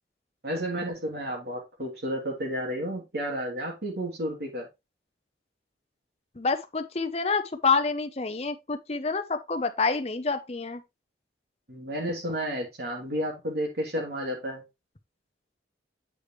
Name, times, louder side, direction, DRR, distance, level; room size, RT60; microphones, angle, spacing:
voice 1, 0.4-4.7 11.7-14.6, equal, 60° right, 2.8 m, -32 dB
voice 2, 6.4-10.8, left 4 dB, 35° left, 0.7 m, -27 dB
8.4 x 5.0 x 3.1 m
head